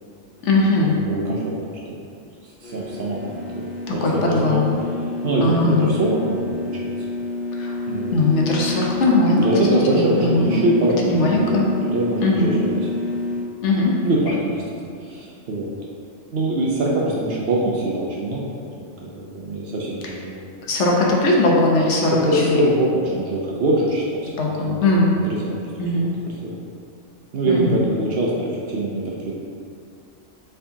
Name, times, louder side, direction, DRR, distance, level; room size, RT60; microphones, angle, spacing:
voice 1, 0.4-1.0 4.0-4.8 5.4-5.9 7.6-7.7 8.1-9.5 9.9-10.7 11.1-11.7 12.2-12.5 13.6-13.9 20.7-22.6 24.4-25.1 25.8-26.1 27.5-27.8, left 2 dB, 70° left, -2 dB, 0.9 m, -19 dB
voice 2, 0.9-1.5 1.9-2.0 2.4-4.7 5.2-6.9 7.9-8.1 9.3-12.9 14.0-14.6 15.0-15.7 16.3-18.5 18.8-20.4 22.2-24.3 24.6-25.5 26.4-26.5 27.3-29.3, right 1 dB, 60° right, -4 dB, 0.7 m, -23 dB
sound 1, 2.6-13.4, left 2 dB, 50° left, 0.6 m, -28 dB
4.6 x 3.7 x 2.7 m, 2.4 s
omnidirectional pair, 1.4 m